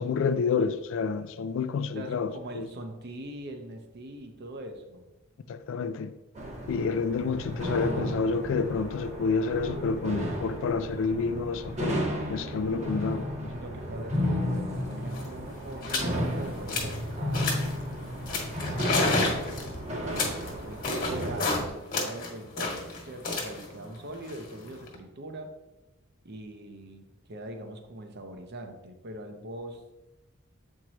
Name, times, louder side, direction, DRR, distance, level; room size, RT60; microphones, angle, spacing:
voice 1, 0.0-2.7 5.5-6.1 6.7-12.0 12.3-13.3, left 5 dB, 65° left, 0.3 m, -29 dB
voice 2, 1.9-5.0 12.7-12.9 13.5-17.5 19.8-25.5 26.2-29.8, right 1 dB, 55° right, 0.8 m, -42 dB
sound 1, 6.3-21.7, equal, 35° right, 1.1 m, -33 dB
sound 2, 14.8-14.9 15.0-15.3 15.8-16.1 16.5-17.0 17.3-17.8 18.3-21.6 21.9-24.9, left 3 dB, 45° left, 1.5 m, -31 dB
7.5 x 4.6 x 2.9 m
head